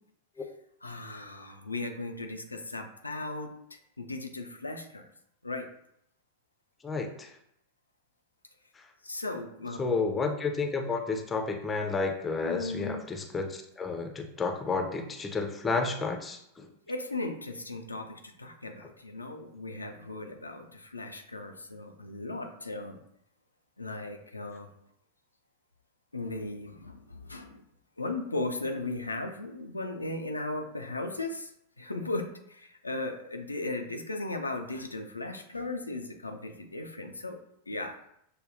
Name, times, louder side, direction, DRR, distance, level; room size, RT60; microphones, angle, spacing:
voice 1, 0.8-5.1 5.4-5.7 9.0-9.8 12.4-13.0 16.9-23.0 23.8-24.7 26.1-27.6 28.0-31.5 31.8-37.4 37.7-38.0, left 2 dB, 80° left, 4 dB, 0.4 m, -37 dB
voice 2, 6.8-7.3 9.8-13.5 13.8-16.4, left 4 dB, 15° left, 4 dB, 0.5 m, -31 dB
6.6 x 2.2 x 2.6 m, 0.75 s
figure-of-eight pair, 90°, 0 cm